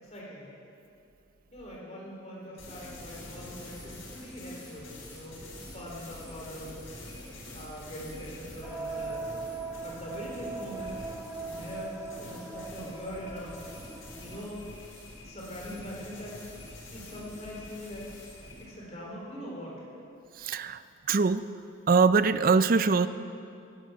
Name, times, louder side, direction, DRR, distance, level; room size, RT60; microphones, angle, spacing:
voice 1, 0.0-0.5 1.5-7.0 7.5-9.3 9.8-10.9 11.4-13.6 14.2-14.6 15.2-16.4 16.9-18.1 18.6-19.9, equal, 35° left, -3 dB, 3.7 m, -42 dB
sound 1, 2.6-18.7, left 1 dB, 90° left, 4.6 m, -46 dB
sound 2, 8.6-14.5, right 3 dB, 10° right, 1.2 m, -40 dB
voice 2, 20.4-20.8 21.1-21.4 21.9-23.1, right 4 dB, 45° right, 13 dB, 0.5 m, -22 dB
14.5 x 10.5 x 8.1 m, 2.6 s
head